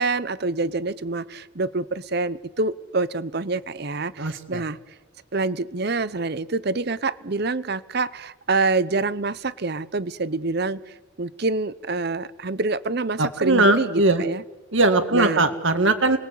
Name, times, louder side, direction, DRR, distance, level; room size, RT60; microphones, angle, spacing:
voice 1, 0.0-4.8 5.3-14.4 15.1-15.5, right 3 dB, 50° right, 17 dB, 0.8 m, -26 dB
voice 2, 4.2-4.6 13.2-14.2 14.7-16.2, right 2 dB, 65° right, 8 dB, 2.0 m, -20 dB
29.5 x 21.0 x 8.4 m, 1.3 s
head